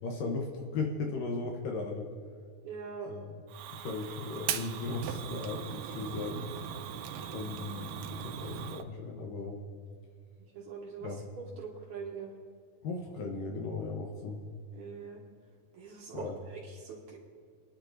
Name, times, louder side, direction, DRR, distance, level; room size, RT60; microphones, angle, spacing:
voice 1, 0.0-2.1 3.0-3.4 3.7-6.5 7.3-9.6 11.0-11.2 12.8-14.4 16.1-16.4, left 3 dB, 70° left, 2 dB, 2.4 m, -37 dB
voice 2, 2.6-3.1 10.5-11.1 11.6-12.3 14.7-15.2 15.7-17.2, right 5 dB, 55° right, -3 dB, 2.8 m, -43 dB
Fire, 3.5-8.8, right 9 dB, 75° right, 2.1 m, -39 dB
29.0 x 10.5 x 2.6 m, 2.2 s
omnidirectional pair, 4.5 m